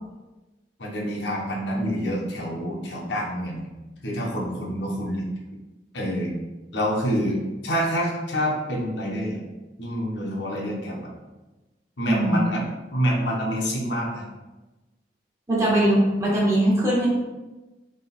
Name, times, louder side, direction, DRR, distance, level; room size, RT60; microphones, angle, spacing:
voice 1, 0.8-3.7 4.0-5.3 5.9-6.4 6.7-9.4 9.8-11.0 12.0-12.6 12.9-14.2, equal, 85° left, -3 dB, 1.2 m, -27 dB
voice 2, 12.1-12.4 15.5-17.1, right 1 dB, 15° right, -6 dB, 1.2 m, -20 dB
3.8 x 3.0 x 4.3 m, 1.1 s
head